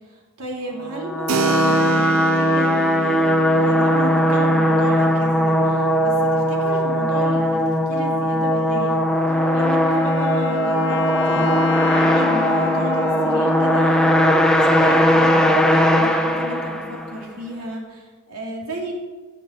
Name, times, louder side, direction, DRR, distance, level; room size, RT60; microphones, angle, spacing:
voice 1, 0.1-9.0 9.5-18.9, right 1 dB, 90° right, -1 dB, 2.8 m, -33 dB
sound 1, 0.9-17.2, equal, 5° left, 1.0 m, -19 dB
Keyboard (musical), 1.3-9.7, right 5 dB, 70° right, 0.6 m, -30 dB
Wind instrument woodwind instrument, 9.3-15.0, left 6 dB, 55° left, 1.1 m, -30 dB
17.0 x 6.9 x 4.5 m, 1.4 s
head